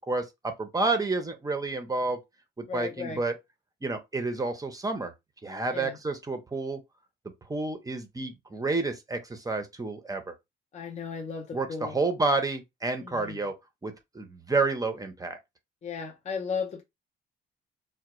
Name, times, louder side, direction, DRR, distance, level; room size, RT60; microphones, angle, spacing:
voice 1, 0.1-2.2 2.6-3.3 3.8-5.1 5.4-6.8 7.5-10.3 11.5-13.5 13.8-15.4, right 3 dB, 20° right, 0.5 m, -30 dB
voice 2, 2.7-3.2 5.7-6.0 10.7-12.0 13.0-13.5 15.8-16.8, left 6 dB, 35° left, 0.5 m, -35 dB
2.3 x 2.1 x 2.9 m
cardioid pair, 90°, 20 cm